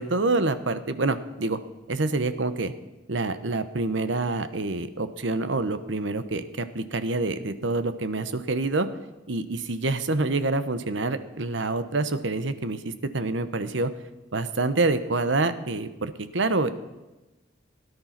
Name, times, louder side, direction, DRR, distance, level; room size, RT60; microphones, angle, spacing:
voice 1, 0.0-1.6 1.9-2.7 3.1-8.9 9.3-13.9 14.3-16.7, right 3 dB, 75° right, 11 dB, 1.1 m, -27 dB
17.5 x 11.0 x 6.0 m, 1.1 s
head